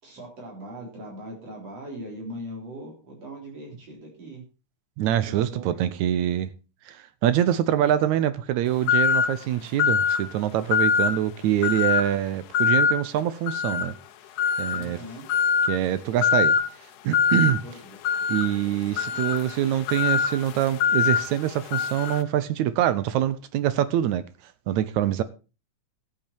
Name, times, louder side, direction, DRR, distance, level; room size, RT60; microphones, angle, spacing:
voice 1, 0.0-4.4 5.2-6.3 14.8-15.3 17.6-18.0 19.0-19.2, equal, 50° right, 4.8 m, -40 dB
voice 2, 5.0-6.5 6.9-14.0 14.6-15.0 15.7-16.6 17.0-17.6 18.3-24.3 24.7-25.2, right 11 dB, 75° right, 2.0 m, -25 dB
sound 1, 8.9-9.4 9.8-10.3 10.7-11.2 11.6-12.1 12.5-13.0 13.5-13.9 14.4-14.8 15.3-15.7 16.2-16.6 17.1-17.5 18.0-22.2, left 7 dB, 90° left, 2.4 m, -23 dB
14.0 x 8.6 x 4.4 m
omnidirectional pair, 3.6 m